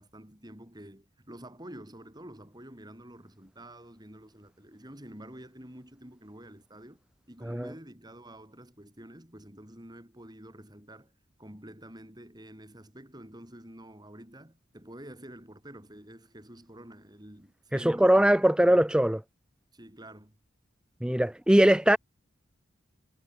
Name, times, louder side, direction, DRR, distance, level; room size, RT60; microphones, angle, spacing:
voice 1, 0.0-11.1 11.4-18.3 18.6-18.8 19.7-20.4, right 1 dB, 20° right, 6.6 m, -48 dB
voice 2, 17.8-19.2 21.0-22.0, right 1 dB, 5° right, 0.4 m, -21 dB
head